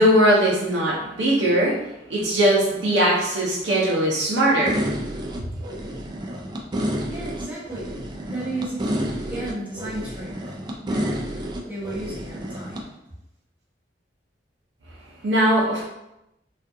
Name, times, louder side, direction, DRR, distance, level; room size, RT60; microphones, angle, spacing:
voice 1, 0.0-1.8 2.1-4.9 15.2-15.9, right 1 dB, 90° right, -5 dB, 0.5 m, -20 dB
sound 1, 4.7-12.8, equal, 25° right, 0.3 m, -30 dB
voice 2, 7.1-7.9 8.3-12.9, right 2 dB, 10° right, -7 dB, 0.8 m, -34 dB
2.4 x 2.3 x 2.5 m, 0.88 s
head